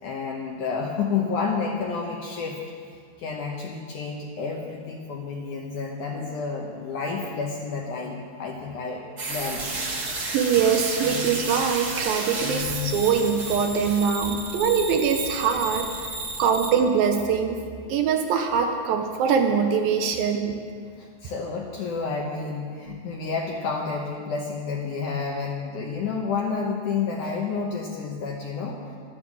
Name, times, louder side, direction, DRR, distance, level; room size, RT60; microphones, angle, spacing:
voice 1, 0.0-2.6 3.2-9.7 11.1-11.3 12.4-13.1 21.0-28.8, left 5 dB, 75° left, 0 dB, 1.9 m, -30 dB
sound 1, 9.2-16.7, right 2 dB, 55° right, 1.1 m, -32 dB
voice 2, 10.3-17.6 17.9-20.6, right 6 dB, 75° right, 4 dB, 2.3 m, -23 dB
12.0 x 10.0 x 7.4 m, 2.1 s
omnidirectional pair, 4.6 m